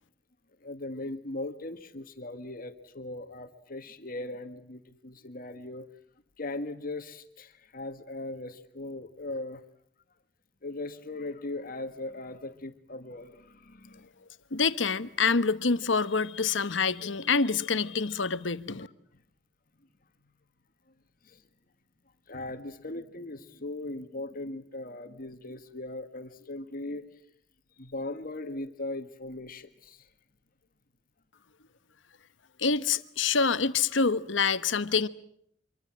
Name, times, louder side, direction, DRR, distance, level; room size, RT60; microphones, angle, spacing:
voice 1, 0.6-5.9 6.4-9.6 10.6-14.1 18.1-18.2 19.1-19.2 21.2-21.5 22.3-27.2 27.8-30.1, left 2 dB, 50° left, 1.7 m, -39 dB
voice 2, 14.5-18.9 32.6-35.1, left 5 dB, 80° left, 1.2 m, -26 dB
26.0 x 24.5 x 7.5 m
head